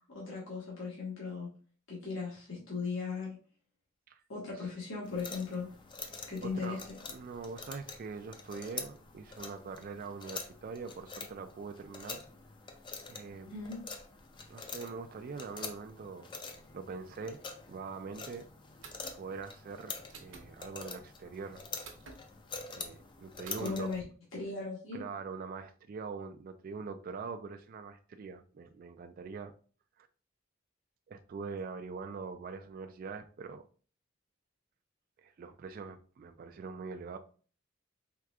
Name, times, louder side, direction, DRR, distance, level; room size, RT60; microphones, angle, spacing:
voice 1, 0.1-1.5 1.9-3.4 4.3-5.7 6.3-6.8 13.5-13.8 23.6-24.0 24.3-25.0, left 4 dB, 85° left, 1.4 m, -37 dB
sound 1, 5.0-24.0, left 4 dB, 25° left, 0.4 m, -46 dB
voice 2, 6.4-12.3 13.1-13.5 14.5-16.3 16.7-17.4 17.7-18.5 19.1-21.6 22.7-23.9 24.9-29.5 30.0-30.1 31.1-33.6 35.2-37.2, right 5 dB, 45° right, 0.3 m, -43 dB
sound 2, 18.8-19.2 20.1-20.5 21.8-22.2 23.4-23.7, right 4 dB, 65° right, 1.0 m, -49 dB
4.7 x 3.5 x 2.3 m
head